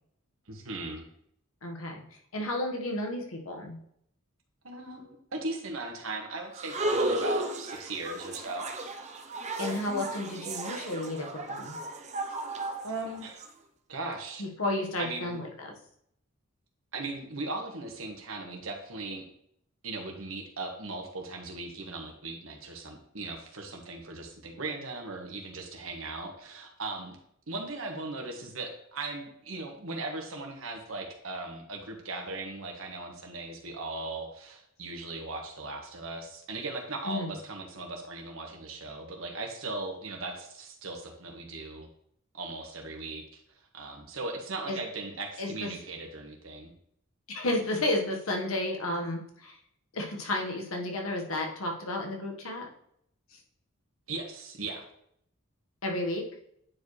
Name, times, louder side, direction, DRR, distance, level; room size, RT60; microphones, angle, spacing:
voice 1, 0.5-1.0 4.6-8.7 12.8-13.4 13.9-14.4 15.0-15.4 16.9-19.2 19.8-27.2 27.5-41.9 42.3-43.4 43.7-46.7 54.1-54.8, right 2 dB, 75° right, 2 dB, 1.4 m, -38 dB
voice 2, 1.6-2.0 2.3-3.8 9.6-11.8 14.4-15.7 37.0-37.3 44.7-44.8 45.4-45.7 47.3-49.6 49.9-52.7 53.3-53.4 55.8-56.3, left 1 dB, 85° left, 1 dB, 1.4 m, -32 dB
sound 1, 6.6-13.5, right 2 dB, 35° right, 0.7 m, -34 dB
9.3 x 4.7 x 3.2 m, 0.70 s
head